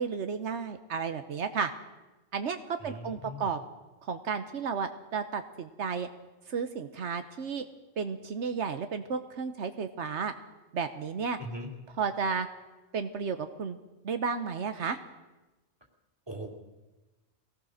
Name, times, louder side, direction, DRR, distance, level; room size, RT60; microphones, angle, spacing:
voice 1, 0.0-1.7 2.3-2.6 2.8-3.6 4.1-6.1 6.5-7.6 8.0-10.3 10.7-11.4 12.0-12.5 12.9-13.8 14.0-15.0, right 5 dB, 80° right, 9 dB, 1.2 m, -32 dB
voice 2, 2.8-3.5 11.4-11.7 16.3-16.5, right 1 dB, 20° right, -1 dB, 3.2 m, -40 dB
22.5 x 18.5 x 6.5 m, 1.1 s
omnidirectional pair, 1.2 m